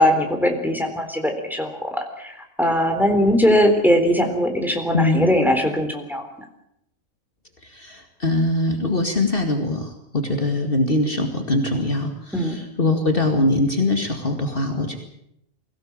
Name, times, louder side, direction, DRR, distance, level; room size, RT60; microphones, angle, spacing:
voice 1, 0.0-6.2 12.3-12.6, equal, ahead, 4 dB, 3.7 m, -20 dB
voice 2, 4.9-5.3 7.6-15.0, left 2 dB, 45° left, 4 dB, 2.4 m, -22 dB
23.5 x 17.0 x 8.8 m, 0.79 s
omnidirectional pair, 1.4 m